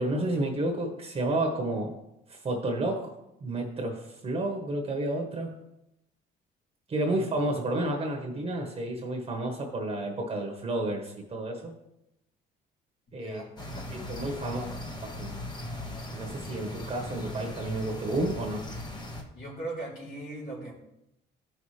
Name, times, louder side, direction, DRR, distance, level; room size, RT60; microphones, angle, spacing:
voice 1, 0.0-2.0 2.3-3.1 3.4-5.5 6.9-11.7 13.1-13.4 13.9-14.6 15.0-15.4 16.1-18.6, right 1 dB, 35° right, 2 dB, 1.4 m, -31 dB
voice 2, 13.2-13.9 14.4-14.8 19.3-20.7, right 2 dB, 60° left, -6 dB, 3.6 m, -39 dB
sound 1, 13.6-19.2, left 1 dB, 25° left, 1.4 m, -38 dB
13.0 x 5.7 x 3.3 m, 0.86 s
cardioid pair, 110°, 17 cm